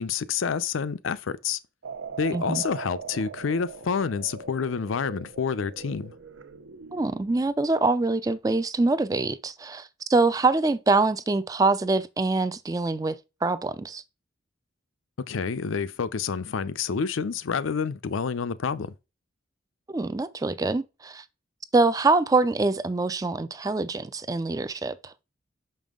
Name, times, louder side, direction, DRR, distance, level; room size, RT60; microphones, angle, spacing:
voice 1, 0.0-1.6 2.2-6.1 15.3-18.9, left 6 dB, 80° left, 0.5 m, -28 dB
sound 1, 1.8-7.5, right 5 dB, 75° right, 0.7 m, -41 dB
voice 2, 6.9-14.0 19.9-21.2 21.7-25.1, right 3 dB, 20° right, 0.3 m, -24 dB
6.0 x 5.4 x 3.6 m
head